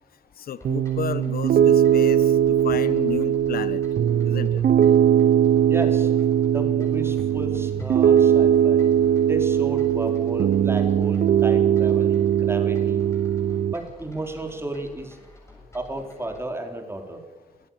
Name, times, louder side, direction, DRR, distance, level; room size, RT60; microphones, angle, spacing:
voice 1, 0.5-2.2 2.6-3.8 4.2-4.6, left 9 dB, 85° left, 15 dB, 1.2 m, -32 dB
sound 1, 0.6-16.5, left 1 dB, 20° left, 7.6 m, -50 dB
Piano, 0.6-13.7, right 9 dB, 85° right, 0.7 m, -20 dB
voice 2, 5.7-6.1 6.5-8.8 9.3-13.0 13.7-15.2 15.7-17.2, right 2 dB, 15° right, 4 dB, 4.1 m, -33 dB
27.5 x 16.0 x 7.3 m, 1.3 s
wide cardioid pair, 150°, 15 cm